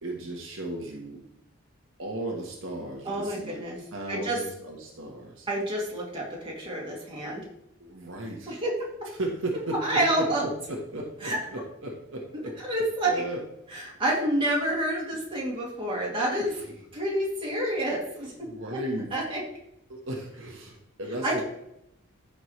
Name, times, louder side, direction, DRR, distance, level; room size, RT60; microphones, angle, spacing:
voice 1, 0.0-1.2 2.0-3.6 3.9-5.5 7.8-8.6 9.1-12.6 13.0-13.4 16.4-16.8 18.2-19.1 19.9-21.4, right 1 dB, 70° right, 0 dB, 1.4 m, -35 dB
voice 2, 3.0-3.8 4.1-4.4 5.5-7.4 8.5-8.7 9.8-10.4 11.2-11.4 12.7-13.2 13.7-16.5 16.9-18.5 19.1-19.4 21.2-21.4, right 1 dB, 25° right, -4 dB, 2.8 m, -28 dB
14.0 x 5.0 x 3.3 m, 0.80 s
head